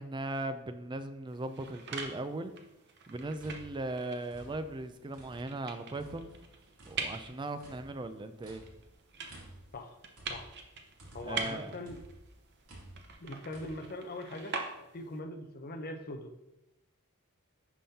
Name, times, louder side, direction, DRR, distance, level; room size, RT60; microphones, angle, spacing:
voice 1, 0.0-2.5 3.1-6.3 6.9-8.6 11.2-11.7, right 2 dB, 20° right, 10 dB, 0.4 m, -38 dB
sound 1, 1.3-15.2, right 4 dB, 50° right, 0.7 m, -44 dB
sound 2, 3.3-5.6 5.9-11.5 11.8-13.7, right 1 dB, 80° right, 2.3 m, -53 dB
voice 2, 11.1-12.0 13.2-14.6 14.9-16.3, left 1 dB, 45° left, 4 dB, 0.7 m, -41 dB
10.5 x 3.7 x 2.8 m, 0.91 s
head